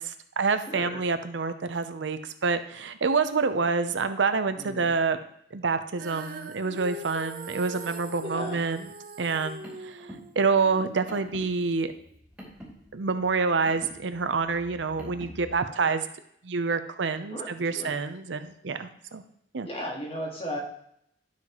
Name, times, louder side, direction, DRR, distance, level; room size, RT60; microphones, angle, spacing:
voice 1, 0.0-5.2 5.5-8.9 9.2-11.9 12.9-16.0 16.4-19.2 19.5-19.7, right 4 dB, 85° right, 10 dB, 0.6 m, -27 dB
voice 2, 0.7-1.0 4.6-4.9 8.2-8.6 15.8-15.9 17.3-17.9 19.6-20.6, equal, 35° left, -1 dB, 1.7 m, -36 dB
Female singing, 6.0-12.2, right 3 dB, 50° right, 0.7 m, -42 dB
Car, 9.6-15.5, equal, 5° right, 2.5 m, -48 dB
12.0 x 5.8 x 3.0 m, 0.71 s
head